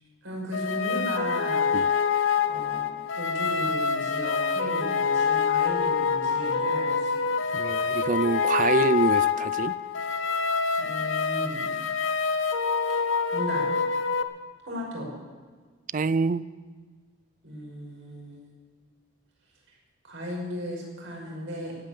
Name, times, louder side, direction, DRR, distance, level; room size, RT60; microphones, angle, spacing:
voice 1, 0.2-1.7 2.5-7.4 10.8-11.7 12.9-13.7 14.6-15.1 17.4-18.7 20.0-21.8, equal, 65° right, -2 dB, 5.7 m, -36 dB
sound 1, 0.5-14.2, left 5 dB, 65° left, 0.7 m, -26 dB
voice 2, 7.5-9.7 15.9-16.5, right 3 dB, 40° right, 17 dB, 0.4 m, -25 dB
17.0 x 8.9 x 8.4 m, 1.5 s
head